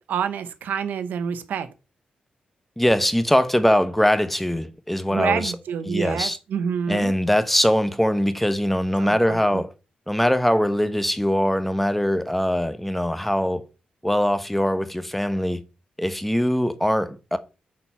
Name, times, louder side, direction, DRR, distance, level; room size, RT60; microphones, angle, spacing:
voice 1, 0.0-1.7 5.1-7.1 9.0-9.6, right 7 dB, 85° right, 0.8 m, -28 dB
voice 2, 2.8-5.5 5.9-6.4 6.9-9.7 10.1-13.6 14.0-15.6 16.0-17.4, equal, 5° left, 0.9 m, -22 dB
8.5 x 4.3 x 5.7 m
cardioid pair, 70°, 3 cm